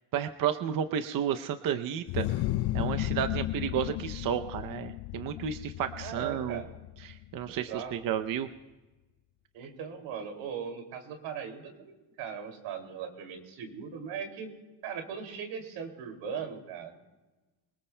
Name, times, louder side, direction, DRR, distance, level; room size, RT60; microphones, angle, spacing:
voice 1, 0.1-2.3 2.7-6.6 7.0-8.5, right 9 dB, 50° right, 8 dB, 0.7 m, -32 dB
sound 1, 2.1-7.6, left 15 dB, 65° left, 0.6 m, -34 dB
voice 2, 6.0-6.7 7.7-7.9 9.5-11.9 12.2-14.5 14.8-17.0, right 7 dB, 90° right, 4 dB, 2.7 m, -39 dB
25.0 x 19.5 x 2.2 m, 1.1 s
cardioid pair, 125°, 43 cm